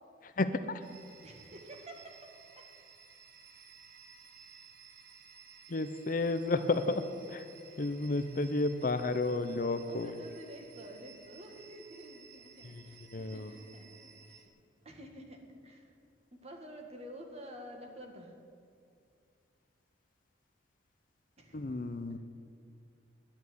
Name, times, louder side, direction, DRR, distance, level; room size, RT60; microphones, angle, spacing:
voice 1, 0.2-0.8 5.7-7.4 7.8-10.1 12.6-12.8 13.1-13.5 21.5-22.2, left 2 dB, 45° left, 10 dB, 0.6 m, -32 dB
sound 1, 0.8-14.5, right 6 dB, 55° right, 1.3 m, -56 dB
voice 2, 1.2-2.3 7.5-8.2 9.8-14.5 14.8-16.0 16.4-18.4 21.4-21.6, equal, 35° right, 2 dB, 1.8 m, -50 dB
10.5 x 10.5 x 9.5 m, 2.3 s
head